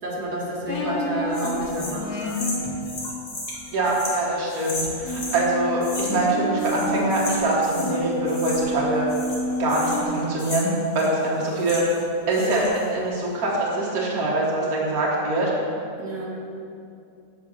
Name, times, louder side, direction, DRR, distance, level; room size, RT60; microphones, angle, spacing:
voice 1, 0.0-2.1 2.6-2.7 16.0-16.3, equal, 85° right, -4 dB, 2.1 m, -29 dB
sound 1, 0.7-2.9 5.0-10.0, equal, 70° left, 1.7 m, -29 dB
sound 2, 1.3-5.4 5.8-6.3 6.6-8.0 8.3-8.8 9.1-12.0 12.3-12.9, left 1 dB, 40° left, 2.0 m, -35 dB
voice 2, 3.7-9.1 9.6-11.8 12.3-15.5, right 2 dB, 65° right, -4 dB, 2.0 m, -24 dB
8.1 x 7.7 x 5.6 m, 2.5 s
omnidirectional pair, 1.6 m